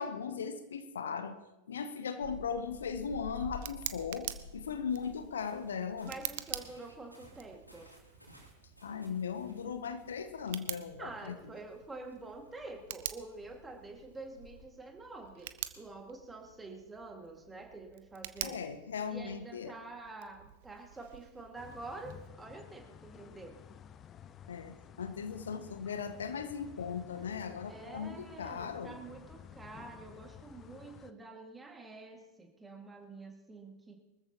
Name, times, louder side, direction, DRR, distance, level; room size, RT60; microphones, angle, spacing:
voice 1, 0.0-1.4 1.7-6.1 8.8-11.4 18.4-19.8 24.5-29.0, left 6 dB, 65° left, 11 dB, 0.9 m, -38 dB
sound 1, 2.2-14.6, left 2 dB, 90° right, 3.0 m, -53 dB
Tick, 2.6-22.3, right 14 dB, 55° right, 0.7 m, -47 dB
voice 2, 6.0-7.9 11.0-18.6 19.1-23.6 27.7-33.9, right 3 dB, 10° right, 3 dB, 2.1 m, -47 dB
sound 2, 21.5-31.1, left 9 dB, 30° left, 0.5 m, -53 dB
23.5 x 14.0 x 3.0 m, 1.0 s
figure-of-eight pair, 90°, 0 cm